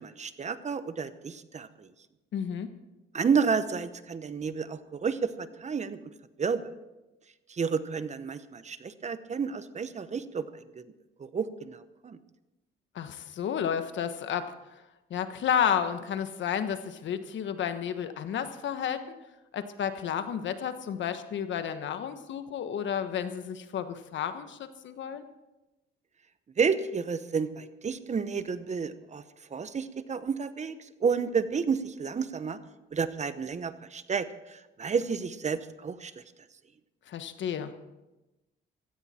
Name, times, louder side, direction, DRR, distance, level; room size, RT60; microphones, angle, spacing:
voice 1, 0.0-1.9 3.1-6.0 6.4-6.6 7.5-10.5 10.7-10.8 11.2-12.2 26.6-29.2 29.5-32.6 32.9-36.2, right 5 dB, 35° right, 13 dB, 0.9 m, -31 dB
voice 2, 2.3-2.7 12.9-14.8 15.1-19.0 19.5-25.2 37.1-37.7, left 8 dB, 70° left, 10 dB, 1.3 m, -31 dB
16.0 x 15.0 x 4.3 m, 1.0 s
cardioid pair, 90°, 20 cm